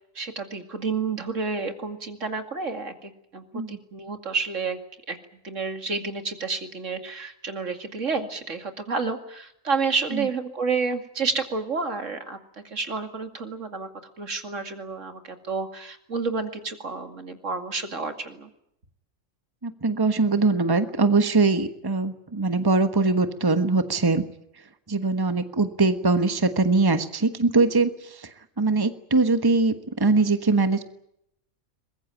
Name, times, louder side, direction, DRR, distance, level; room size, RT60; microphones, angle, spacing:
voice 1, 0.2-4.8 5.1-5.2 5.4-12.4 12.7-13.9 14.2-18.5, right 4 dB, 80° right, 7 dB, 2.8 m, -30 dB
voice 2, 19.6-24.2 24.9-30.8, right 3 dB, 20° right, 9 dB, 1.3 m, -22 dB
23.5 x 21.0 x 9.1 m, 0.76 s
omnidirectional pair, 1.3 m